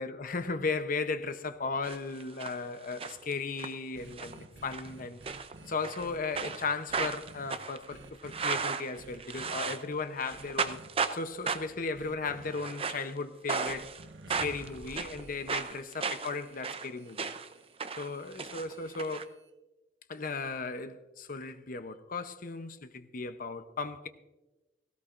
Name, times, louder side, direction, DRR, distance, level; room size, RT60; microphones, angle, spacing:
voice 1, 0.0-5.2 5.6-10.8 11.1-13.9 14.4-17.3 18.0-19.3 20.1-24.1, left 4 dB, 50° left, 0.7 m, -36 dB
sound 1, 1.8-2.6 2.8-3.7 4.1-4.4 4.7-4.9 5.3-6.1 6.4-9.9 10.2-11.2 11.5-11.8 12.5-13.1 13.5-14.0 14.3-17.5 17.8-19.2, right 5 dB, 30° right, 0.6 m, -35 dB
sound 2, 3.9-6.6 6.9-7.5 7.9-8.5 9.0-9.6 10.3-10.9 11.9-12.5 13.7-19.5, right 2 dB, 80° right, 1.0 m, -52 dB
17.5 x 17.0 x 2.5 m
head